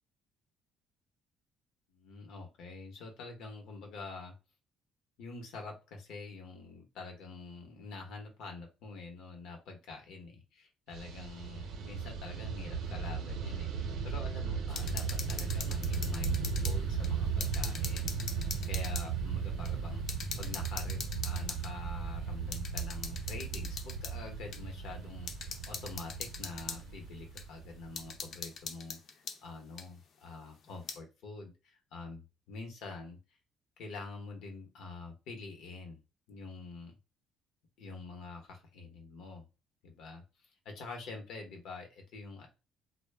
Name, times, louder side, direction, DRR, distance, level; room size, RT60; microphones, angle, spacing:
voice 1, 1.9-4.3 5.2-18.1 18.7-20.0 20.4-33.2 33.8-36.0 36.3-36.9 37.8-39.4 39.8-42.5, left 3 dB, 70° left, 3 dB, 0.8 m, -46 dB
Fixed-wing aircraft airplane, 10.9-28.3, right 5 dB, 65° right, 0.5 m, -36 dB
sound 1, 14.7-16.8 17.0-19.1 19.6-19.7 20.1-21.7 22.5-24.1 24.5-24.6 25.3-26.8 27.4-27.5 28.0-29.4 29.8-29.9 30.7-31.0, left 5 dB, 45° left, 0.5 m, -42 dB
2.1 x 2.0 x 3.2 m, 0.30 s
cardioid pair, 160°, 0 cm